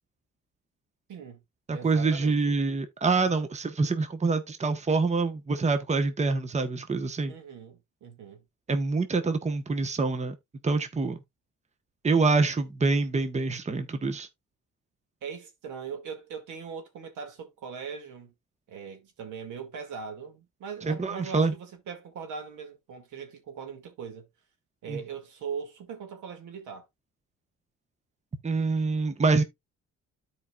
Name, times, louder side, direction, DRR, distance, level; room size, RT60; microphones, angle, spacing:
voice 1, 1.1-1.4 1.7-2.5 7.3-8.4 15.2-18.3 18.7-24.3 24.8-26.9, right 6 dB, 80° right, 2.1 m, -40 dB
voice 2, 1.7-7.3 8.7-10.3 10.6-11.2 12.0-14.3 20.8-21.5 24.9-25.0 28.4-29.4, right 3 dB, 20° right, 1.0 m, -26 dB
13.0 x 4.8 x 2.3 m
cardioid pair, 90°, 30 cm